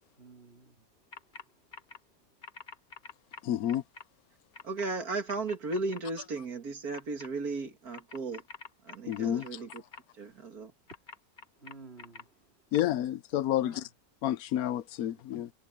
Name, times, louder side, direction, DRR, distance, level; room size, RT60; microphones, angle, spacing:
voice 1, 0.0-2.2 10.9-11.0 11.5-12.6 13.6-13.9 15.1-15.3, right 3 dB, 45° right, 4.1 m, -55 dB
sound 1, 1.1-1.4 1.7-2.0 2.4-4.0 4.5-4.9 5.3-6.0 6.9-7.3 7.9-10.0 10.9-12.2 12.7-12.8, left 4 dB, 35° left, 1.1 m, -46 dB
voice 2, 3.4-3.8 9.1-9.4 12.7-13.8 14.2-15.5, left 12 dB, 80° left, 1.1 m, -29 dB
voice 3, 4.6-8.4 8.8-9.8 10.2-10.7, right 3 dB, 85° right, 2.6 m, -35 dB
omnidirectional pair, 1.5 m